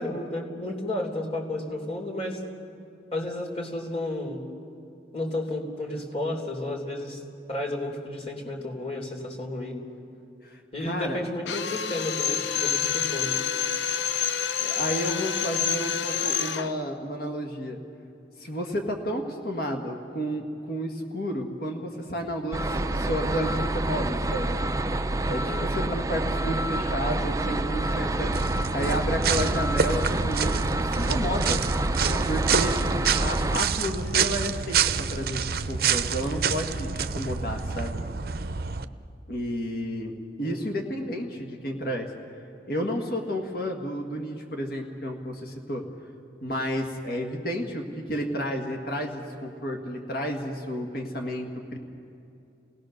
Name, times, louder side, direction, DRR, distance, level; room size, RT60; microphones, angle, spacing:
voice 1, 0.0-2.4 3.1-4.5 5.1-7.2 7.5-9.8 10.7-13.3 25.4-25.7 32.0-32.3 40.4-40.7, left 1 dB, 35° left, -1 dB, 3.6 m, -32 dB
voice 2, 10.4-11.2 14.6-17.8 18.4-24.6 25.3-28.3 28.7-31.6 32.3-32.8 33.2-38.0 39.3-40.1 40.4-42.1 42.7-45.8 46.4-51.8, equal, 55° left, 3 dB, 1.8 m, -31 dB
Drill, 11.5-16.8, left 8 dB, 80° left, 0.8 m, -28 dB
sound 1, 22.5-33.6, right 2 dB, 20° right, 0.5 m, -27 dB
sound 2, 28.3-38.8, right 6 dB, 55° right, 0.7 m, -27 dB
29.5 x 18.0 x 6.6 m, 2.7 s
head